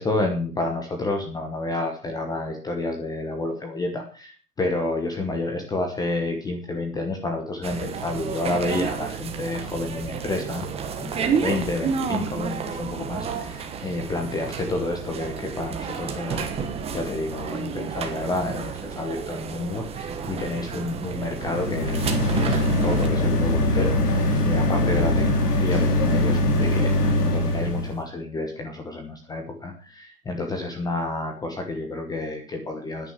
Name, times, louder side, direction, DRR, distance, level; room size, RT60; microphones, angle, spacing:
voice 1, 0.0-10.7 11.0-16.5 16.9-33.1, left 2 dB, 10° left, 4 dB, 1.0 m, -30 dB
sound 1, 7.6-23.1, right 6 dB, 15° right, 1.2 m, -31 dB
sound 2, 21.3-28.0, left 1 dB, 75° left, 3.6 m, -22 dB
10.0 x 8.9 x 7.3 m, 0.39 s
hypercardioid pair, 140°, 46 cm